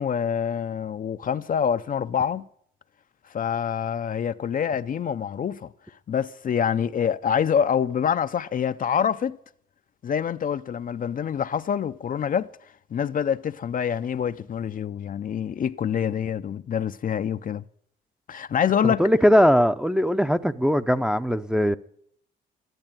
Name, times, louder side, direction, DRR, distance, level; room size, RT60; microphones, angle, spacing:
voice 1, 0.0-2.5 3.3-5.7 6.1-9.4 10.0-12.5 12.9-17.6 18.3-19.0, left 8 dB, 45° left, 0.5 m, -26 dB
voice 2, 18.8-21.8, equal, 5° right, 0.7 m, -20 dB
13.5 x 11.0 x 9.1 m
cardioid pair, 90°, 20 cm